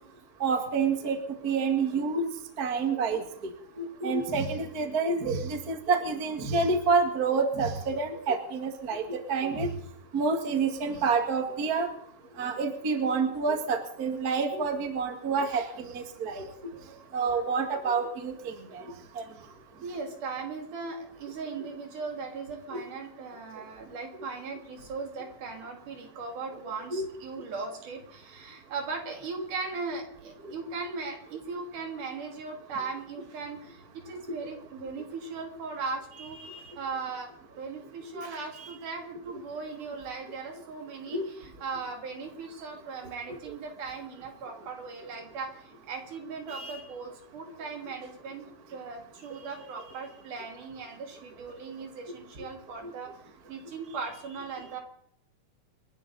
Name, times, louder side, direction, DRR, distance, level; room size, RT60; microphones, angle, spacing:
voice 1, 0.4-1.2 1.4-2.3 2.6-3.5 3.8-9.7 10.1-11.9 12.4-16.5 17.1-18.8 22.7-22.8 26.9-27.1 38.1-38.3 41.1-41.3, right 4 dB, 35° right, 5 dB, 2.0 m, -28 dB
voice 2, 19.8-53.1 53.5-54.8, right 4 dB, 70° right, 2 dB, 4.4 m, -38 dB
28.5 x 11.5 x 4.1 m, 0.69 s
omnidirectional pair, 3.8 m